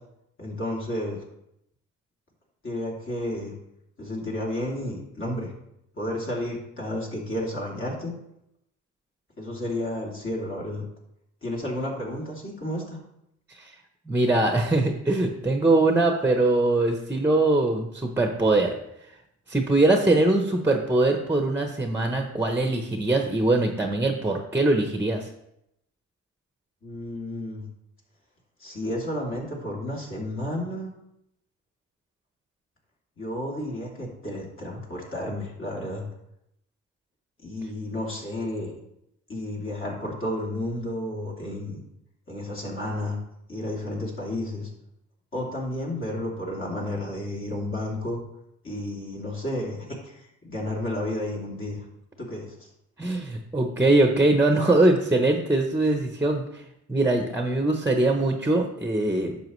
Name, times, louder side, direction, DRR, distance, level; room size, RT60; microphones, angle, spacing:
voice 1, 0.4-1.2 2.6-3.5 4.0-5.5 5.9-8.1 9.4-10.8 11.4-13.0 26.8-27.6 28.6-30.9 33.2-36.0 37.4-38.8 39.3-41.8 42.3-43.2 43.5-44.7 45.3-48.2 48.6-49.8 50.0-51.8 52.2-52.7, left 1 dB, 45° left, -3 dB, 3.1 m, -32 dB
voice 2, 14.1-18.8 19.5-25.3 53.0-56.6 56.9-59.4, right 2 dB, 10° right, 4 dB, 0.9 m, -22 dB
10.5 x 6.8 x 3.2 m, 0.81 s
cardioid pair, 90°, 30 cm